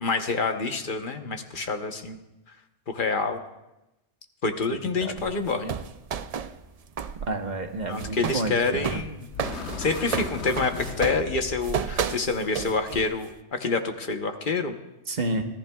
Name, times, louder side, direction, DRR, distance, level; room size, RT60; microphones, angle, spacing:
voice 1, 0.0-2.2 2.9-3.4 4.4-5.7 7.9-9.3 9.8-14.7, left 4 dB, 50° left, 6 dB, 1.1 m, -27 dB
sound 1, 5.2-7.3 7.6-13.3, right 7 dB, 60° right, 0.4 m, -32 dB
voice 2, 7.3-9.0 15.1-15.4, right 2 dB, 40° right, 4 dB, 1.1 m, -29 dB
sound 2, 8.5-8.9 9.3-11.7, left 4 dB, 70° left, 1.4 m, -36 dB
25.0 x 15.0 x 2.3 m, 0.98 s
omnidirectional pair, 1.2 m